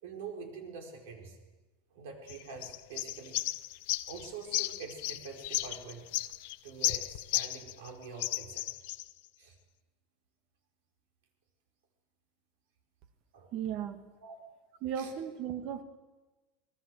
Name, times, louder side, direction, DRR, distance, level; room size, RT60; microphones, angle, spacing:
voice 1, 0.0-1.4 1.9-3.4 4.1-6.1 6.6-8.7 9.4-9.6 13.3-13.5 14.2-14.4 14.9-15.1, right 5 dB, 60° right, 4 dB, 4.6 m, -45 dB
sound 1, 2.3-7.9 8.2-9.1, left 19 dB, 50° left, 0.7 m, -34 dB
voice 2, 13.5-14.0 14.8-15.8, right 9 dB, 35° right, 10 dB, 1.7 m, -35 dB
25.0 x 20.5 x 7.7 m, 1.2 s
supercardioid pair, 180°, 0 cm